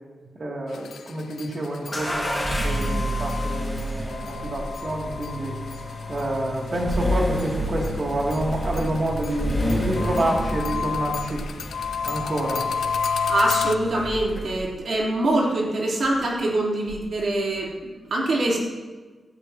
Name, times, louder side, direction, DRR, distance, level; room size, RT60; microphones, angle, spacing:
voice 1, 0.3-5.5 6.1-11.5 12.0-12.7, right 1 dB, 35° right, -2 dB, 2.6 m, -28 dB
sound 1, 0.7-7.0 7.3-13.7, left 6 dB, 85° left, 0.5 m, -31 dB
sound 2, 1.9-14.8, equal, 5° left, 2.0 m, -29 dB
voice 2, 13.3-18.6, right 1 dB, 55° right, -3 dB, 3.4 m, -24 dB
16.5 x 14.5 x 3.0 m, 1.3 s
wide cardioid pair, 170°, 0 cm